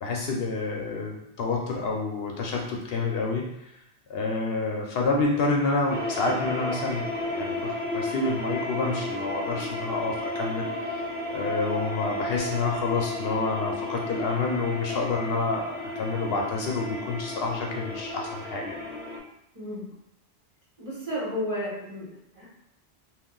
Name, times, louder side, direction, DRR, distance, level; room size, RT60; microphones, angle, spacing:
voice 1, 0.0-3.7 4.1-18.8, left 3 dB, 70° left, 0 dB, 0.7 m, -28 dB
sound 1, 5.9-19.2, left 2 dB, 15° right, 0.5 m, -33 dB
voice 2, 19.5-19.8 20.8-22.4, equal, 35° right, -8 dB, 1.1 m, -33 dB
2.6 x 2.2 x 3.7 m, 0.81 s
omnidirectional pair, 1.1 m